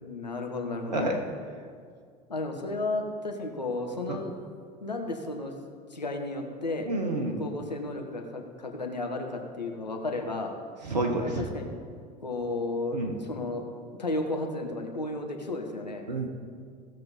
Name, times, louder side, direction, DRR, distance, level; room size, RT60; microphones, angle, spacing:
voice 1, 0.0-1.1 2.3-4.3 4.8-5.5 5.9-6.9 7.4-10.5 11.1-11.7 12.2-13.7 14.0-16.0, left 2 dB, 90° left, 3 dB, 1.2 m, -33 dB
voice 2, 6.9-7.4 10.9-11.5 12.9-13.1 16.1-16.3, right 2 dB, 85° right, 3 dB, 1.0 m, -29 dB
16.5 x 6.6 x 4.2 m, 2.1 s
figure-of-eight pair, 70°, 21 cm